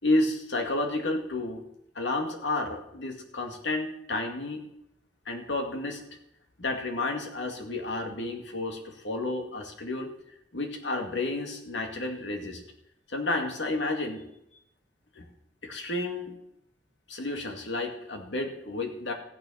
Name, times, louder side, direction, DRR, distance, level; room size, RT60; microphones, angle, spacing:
voice 1, 0.0-1.6 1.9-4.7 5.3-6.0 6.6-10.1 10.5-12.6 13.1-14.2 15.2-15.3 15.6-16.3 17.1-19.1, left 2 dB, 85° left, 3 dB, 2.3 m, -31 dB
14.5 x 9.2 x 5.7 m, 0.79 s
head